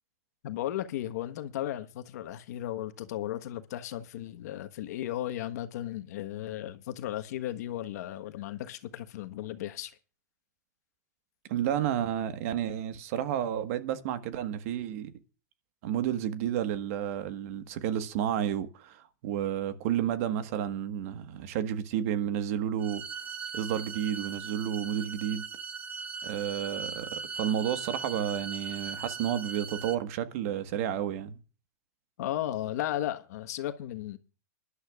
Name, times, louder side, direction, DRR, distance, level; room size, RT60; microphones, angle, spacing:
voice 1, 0.4-9.9 32.2-34.2, left 12 dB, 70° left, 1.3 m, -35 dB
voice 2, 11.5-15.1 15.8-23.0 23.5-25.4 26.2-31.4, right 10 dB, 55° right, 1.5 m, -31 dB
sound 1, 22.8-29.9, right 5 dB, 15° right, 0.9 m, -39 dB
24.5 x 11.5 x 2.4 m
supercardioid pair, 140°, 9 cm